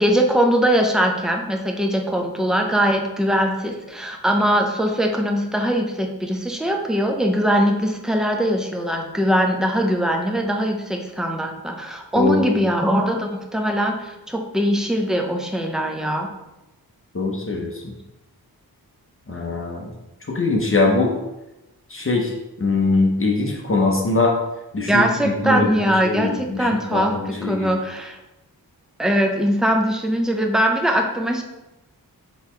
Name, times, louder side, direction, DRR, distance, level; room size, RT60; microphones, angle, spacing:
voice 1, 0.0-16.3 24.9-28.2 29.0-31.4, equal, ahead, 2 dB, 0.5 m, -21 dB
voice 2, 12.1-12.5 17.1-17.9 19.3-19.9 20.3-21.1 21.9-22.3 22.6-24.3 24.7-27.8, left 3 dB, 35° left, -1 dB, 0.7 m, -22 dB
3.9 x 3.0 x 4.3 m, 0.98 s
wide cardioid pair, 120°, 38 cm